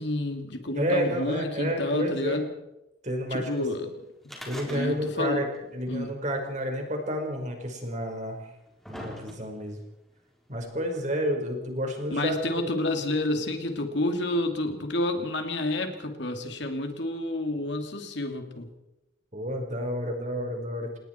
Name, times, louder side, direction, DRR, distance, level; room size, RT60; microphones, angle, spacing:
voice 1, 0.0-2.5 3.3-3.9 4.7-5.4 5.9-6.1 12.1-18.7, left 1 dB, 60° left, 5 dB, 2.9 m, -29 dB
voice 2, 0.8-2.4 3.0-3.5 4.5-5.5 5.7-8.4 8.9-9.8 10.5-12.6 19.3-21.0, equal, 35° right, 3 dB, 5.2 m, -30 dB
sound 1, 4.2-5.3 5.5-5.6 6.6-6.7 7.6-7.7 8.4-9.7 10.6-10.7, left 1 dB, ahead, 4.4 m, -42 dB
29.0 x 19.5 x 4.6 m, 0.91 s
head